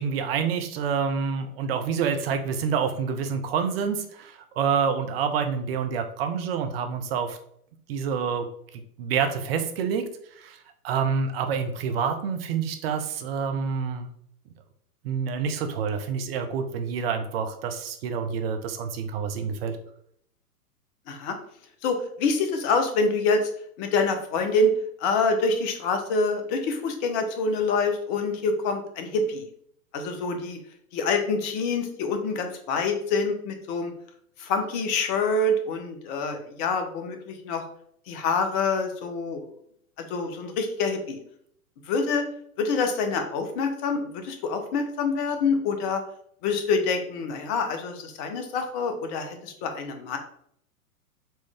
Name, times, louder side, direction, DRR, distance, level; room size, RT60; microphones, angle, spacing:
voice 1, 0.0-7.4 7.9-8.5 9.0-10.1 10.4-10.6 10.8-14.1 15.0-19.8, right 6 dB, 40° right, 7 dB, 0.6 m, -27 dB
voice 2, 21.8-23.4 23.8-24.7 25.0-29.5 29.9-30.6 30.9-33.9 34.4-37.6 38.1-39.4 40.1-41.2 41.9-42.2 42.6-46.0 46.4-50.2, left 3 dB, 30° left, 6 dB, 0.7 m, -26 dB
4.3 x 3.0 x 3.4 m, 0.67 s
figure-of-eight pair, 110°, 45 cm